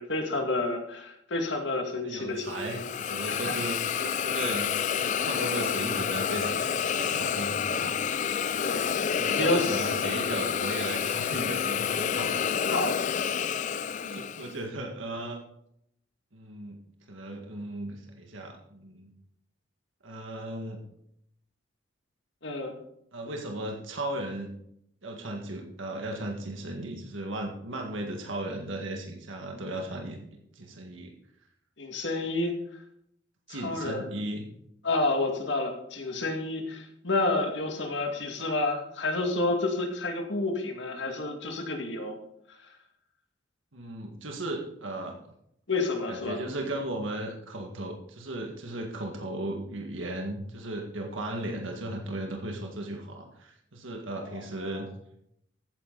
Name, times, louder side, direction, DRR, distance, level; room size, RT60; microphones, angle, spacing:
voice 1, 0.0-2.8 3.3-3.6 8.6-8.8 9.3-9.9 12.6-13.0 22.4-22.8 31.8-32.5 33.5-34.0 34.8-42.2 45.7-46.4 54.1-54.8, left 2 dB, 65° left, 3 dB, 2.2 m, -30 dB
voice 2, 2.0-8.0 9.2-12.4 13.9-15.4 16.3-16.8 17.1-19.1 20.0-20.8 23.1-24.5 25.0-30.2 30.6-31.1 33.5-34.4 43.7-45.2 46.1-54.9, right 1 dB, 80° right, 2 dB, 1.9 m, -36 dB
Hiss, 2.5-14.6, left 7 dB, 40° left, 0.4 m, -29 dB
14.5 x 9.6 x 4.0 m, 0.74 s
head